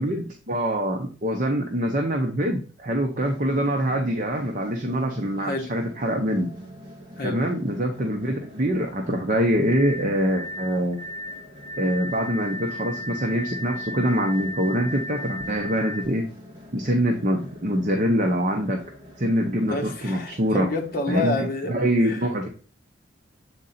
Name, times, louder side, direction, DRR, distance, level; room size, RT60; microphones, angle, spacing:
voice 1, 0.0-6.5 7.2-11.0 11.8-16.3 16.7-18.8 19.2-20.7 21.1-22.5, equal, 40° right, 0.8 m, -24 dB
sound 1, 3.2-21.0, equal, 25° right, 1.7 m, -46 dB
sound 2, 9.6-16.1, left 1 dB, 30° left, 2.1 m, -35 dB
voice 2, 19.7-21.7 22.0-22.2, left 2 dB, 50° left, 1.1 m, -28 dB
8.0 x 3.8 x 4.2 m
head